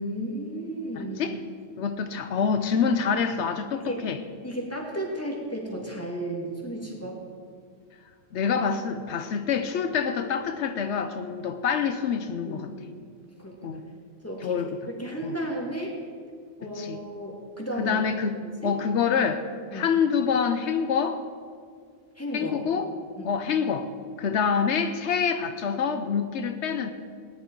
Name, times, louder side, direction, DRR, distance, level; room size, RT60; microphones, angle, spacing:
voice 1, 0.0-1.3 3.7-4.1 4.4-7.2 12.5-12.9 13.4-13.8 14.2-14.6 15.0-16.0 16.6-18.0 18.4-18.7 19.7-19.9 22.2-22.6 23.2-23.4, right 1 dB, 15° left, -2 dB, 2.2 m, -34 dB
voice 2, 1.0-1.4 1.8-4.2 8.3-12.7 13.6-13.8 14.4-14.8 15.2-15.3 16.6-17.0 17.8-18.4 18.6-19.4 19.7-21.2 22.3-22.9 23.2-23.9 24.2-26.9, left 6 dB, 85° left, 8 dB, 1.0 m, -26 dB
18.5 x 10.5 x 4.6 m, 2.1 s
omnidirectional pair, 1.1 m